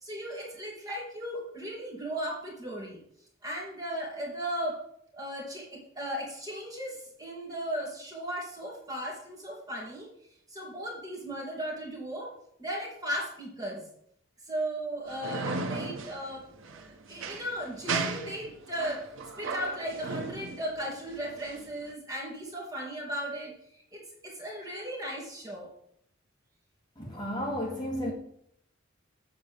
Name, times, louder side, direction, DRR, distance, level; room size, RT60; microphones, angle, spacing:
voice 1, 0.0-3.0 3.4-4.8 5.1-10.1 10.5-12.3 12.6-13.9 14.5-16.5 16.7-19.0 19.4-25.7 28.0-28.1, equal, 20° right, 2.3 m, -36 dB
sound 1, 15.1-21.9, right 3 dB, 85° right, 0.9 m, -36 dB
voice 2, 27.0-28.1, equal, 20° left, 2.1 m, -33 dB
7.9 x 4.1 x 6.7 m
head